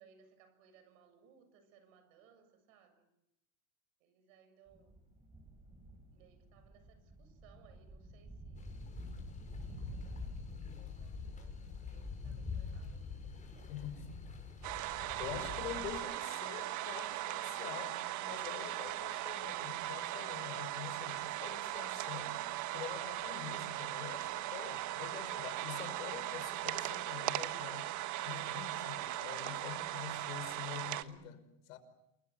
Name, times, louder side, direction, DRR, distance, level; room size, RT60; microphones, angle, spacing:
voice 1, 0.0-3.0 4.0-5.0 6.1-8.7 9.7-14.1, right 7 dB, 70° right, 7.1 m, -65 dB
sound 1, 4.7-10.5, right 2 dB, 15° right, 5.8 m, -51 dB
sound 2, 8.6-16.0, left 5 dB, 20° left, 6.6 m, -45 dB
voice 2, 13.7-14.0 15.2-22.4 22.7-27.9 28.2-31.8, left 9 dB, 75° left, 5.3 m, -46 dB
sound 3, 14.6-31.0, right 15 dB, 45° right, 1.4 m, -39 dB
29.0 x 21.5 x 7.8 m
supercardioid pair, 125°, 41 cm